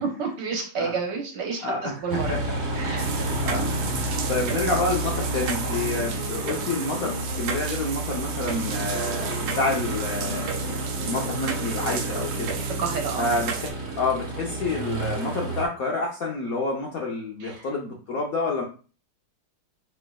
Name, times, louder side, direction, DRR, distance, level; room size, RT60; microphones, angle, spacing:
voice 1, 0.0-2.3 2.7-3.1 12.6-13.3 17.4-17.6, right 5 dB, 65° right, 2 dB, 1.4 m, -30 dB
voice 2, 1.6-2.6 3.4-3.7 4.3-12.5 13.2-13.5 14.0-18.6, left 3 dB, 65° left, -1 dB, 0.9 m, -28 dB
Aircraft, 2.1-15.7, right 2 dB, 40° right, 1.1 m, -30 dB
sound 1, 3.0-13.7, right 7 dB, 85° right, 1.5 m, -34 dB
Wind instrument woodwind instrument, 5.0-14.0, left 3 dB, 90° left, 1.6 m, -42 dB
4.6 x 4.3 x 2.2 m, 0.36 s
omnidirectional pair, 2.3 m